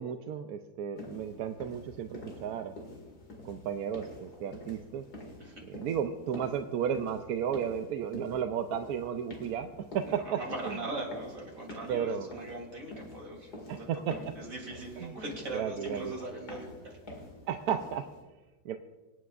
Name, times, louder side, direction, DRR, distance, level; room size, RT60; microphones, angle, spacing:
voice 1, 0.0-2.1 2.4-2.7 3.4-5.1 5.6-9.7 9.9-10.8 11.9-12.3 13.7-14.2 15.0-15.1 15.5-16.1 17.5-18.0 18.6-18.8, right 8 dB, 70° right, 7 dB, 1.0 m, -33 dB
sound 1, 1.0-18.2, left 1 dB, 65° left, 2.7 m, -47 dB
voice 2, 10.2-13.9 14.4-16.9, right 2 dB, 55° right, 0 dB, 3.5 m, -40 dB
24.5 x 9.3 x 2.4 m, 1.2 s
omnidirectional pair, 1.8 m